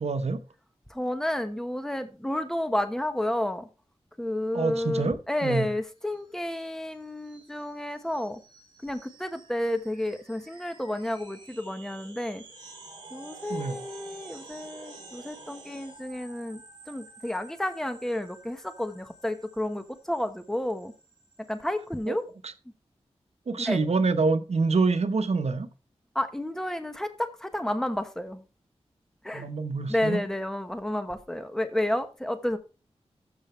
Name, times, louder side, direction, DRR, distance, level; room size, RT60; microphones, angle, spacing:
voice 1, 0.0-0.4 4.5-5.7 13.5-13.8 22.1-22.2 22.4-22.5 23.5-25.7 29.3-30.2, right 4 dB, 70° right, 1.0 m, -26 dB
voice 2, 0.9-3.7 4.2-8.4 8.8-12.4 13.1-16.6 16.9-20.9 21.5-22.2 23.6-23.8 26.1-28.4 29.2-29.5 29.9-32.6, left 1 dB, 5° left, 1.1 m, -31 dB
sound 1, 6.0-22.2, right 3 dB, 45° right, 4.1 m, -50 dB
13.5 x 7.0 x 3.2 m
wide cardioid pair, 105°, 11 cm